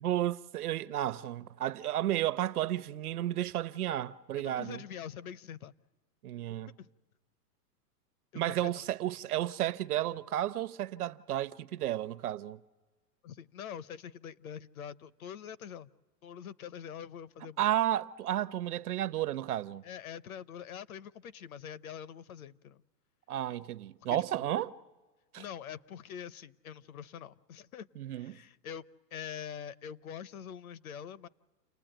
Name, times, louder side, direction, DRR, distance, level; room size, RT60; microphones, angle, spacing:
voice 1, 0.0-4.8 6.2-6.7 8.3-12.6 17.6-19.8 23.3-24.7 25.3-25.4 28.0-28.4, right 13 dB, 65° right, 0.8 m, -32 dB
voice 2, 4.4-5.7 6.8-6.9 8.3-8.9 13.2-15.9 16.2-17.6 19.8-22.8 24.1-24.5 25.4-28.8 29.1-31.3, left 8 dB, 60° left, 0.8 m, -44 dB
29.5 x 20.0 x 9.0 m
supercardioid pair, 180°, 49 cm